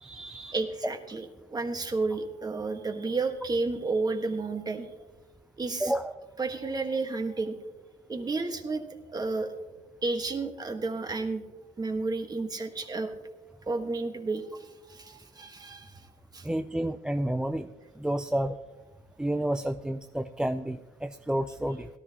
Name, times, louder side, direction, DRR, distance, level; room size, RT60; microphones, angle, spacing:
voice 1, 0.0-0.6 5.8-6.1 16.4-17.7 18.0-18.6 19.2-21.9, right 1 dB, 5° right, 9 dB, 0.3 m, -30 dB
voice 2, 0.5-4.9 5.6-5.9 6.4-7.6 8.1-8.8 9.1-9.5 10.0-11.4 11.8-13.1 13.7-16.1 16.3-16.5, right 3 dB, 25° right, 6 dB, 1.4 m, -31 dB
17.5 x 12.5 x 2.9 m, 1.2 s
cardioid pair, 110°, 17 cm